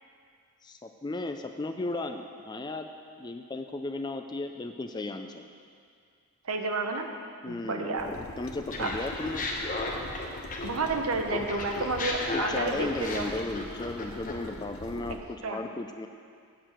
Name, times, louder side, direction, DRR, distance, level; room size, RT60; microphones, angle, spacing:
voice 1, 0.6-2.9 3.2-5.4 7.4-9.5 12.3-16.1, left 2 dB, 20° left, 6 dB, 0.3 m, -35 dB
voice 2, 6.4-7.1 7.5-8.1 8.8-8.9 10.6-13.3 15.4-15.6, right 3 dB, 70° right, 4 dB, 0.9 m, -30 dB
sound 1, 8.0-15.2, left 2 dB, 65° left, 0.7 m, -42 dB
Laughter, 8.7-11.0 11.3-14.5, left 2 dB, 35° left, 1.0 m, -34 dB
7.9 x 6.5 x 7.3 m, 2.2 s
head